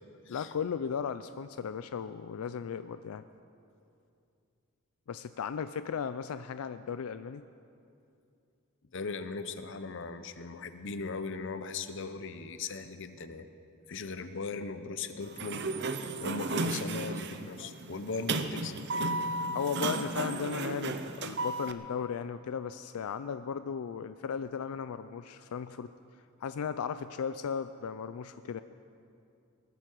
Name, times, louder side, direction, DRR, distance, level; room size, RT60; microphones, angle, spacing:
voice 1, 0.3-3.2 5.1-7.4 19.5-25.9 26.4-28.6, left 6 dB, 85° left, 12 dB, 0.4 m, -36 dB
voice 2, 8.9-13.5 13.9-15.7 16.2-18.7, left 4 dB, 60° left, 10 dB, 0.8 m, -38 dB
Sliding door, 15.2-21.7, right 3 dB, 55° right, 0.7 m, -34 dB
20.0 x 13.5 x 4.6 m, 2.6 s
head